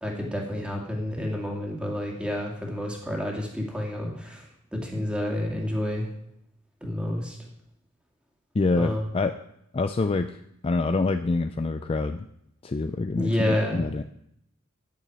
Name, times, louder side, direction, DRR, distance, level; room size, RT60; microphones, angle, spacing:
voice 1, 0.0-4.4 4.8-6.1 6.8-7.4 8.8-9.1 13.1-13.8, left 1 dB, 5° right, -1 dB, 2.2 m, -29 dB
voice 2, 8.5-9.4 9.7-10.4 10.6-12.3 12.6-14.0, left 3 dB, 30° left, 9 dB, 0.4 m, -26 dB
9.5 x 6.7 x 8.8 m, 0.76 s
head